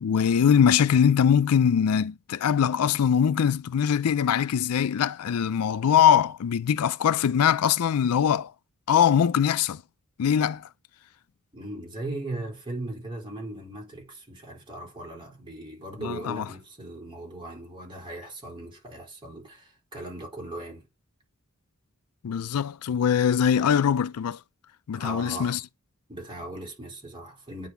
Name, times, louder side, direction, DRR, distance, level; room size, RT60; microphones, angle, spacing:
voice 1, 0.0-8.5 8.9-9.8 10.2-10.7 16.0-16.5 22.2-24.4 24.9-25.6, left 8 dB, 85° left, 0.4 m, -22 dB
voice 2, 11.5-20.9 24.9-25.6 26.1-27.7, right 1 dB, 25° right, 3.8 m, -38 dB
9.1 x 4.0 x 5.5 m
head